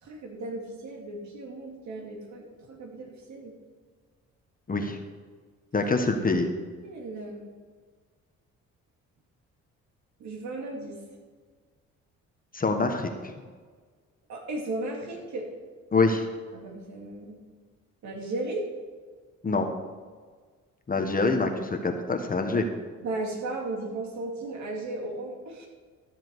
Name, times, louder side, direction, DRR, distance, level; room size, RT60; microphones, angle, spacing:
voice 1, 0.0-3.5 6.8-7.4 10.2-11.0 14.3-15.5 16.5-17.4 18.0-18.7 23.0-25.7, right 2 dB, 70° right, 1 dB, 2.5 m, -35 dB
voice 2, 5.7-6.5 12.5-13.3 15.9-16.2 19.4-19.7 20.9-22.6, left 3 dB, 30° left, 4 dB, 1.2 m, -25 dB
13.0 x 7.5 x 4.7 m, 1.5 s
cardioid pair, 90°, 30 cm